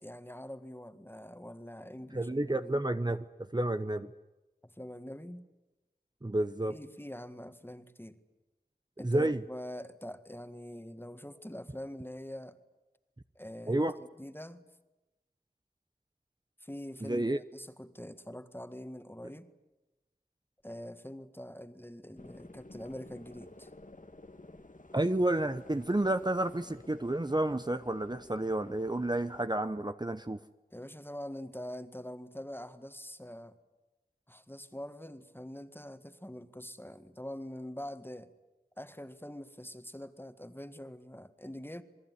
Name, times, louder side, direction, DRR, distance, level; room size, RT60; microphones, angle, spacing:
voice 1, 0.0-2.7 4.6-5.5 6.7-8.2 9.0-12.6 13.4-14.6 16.6-19.5 20.6-23.7 30.7-33.6 34.3-38.3 38.8-41.8, equal, 15° left, 9 dB, 1.9 m, -44 dB
voice 2, 2.1-3.3 3.5-4.1 6.2-6.7 9.0-9.4 13.7-13.9 17.0-17.4 24.9-30.4, right 1 dB, 25° right, 10 dB, 0.9 m, -30 dB
sound 1, 22.2-29.5, left 2 dB, 55° left, 1.5 m, -53 dB
27.5 x 20.5 x 9.9 m, 1.1 s
wide cardioid pair, 40°, 16 cm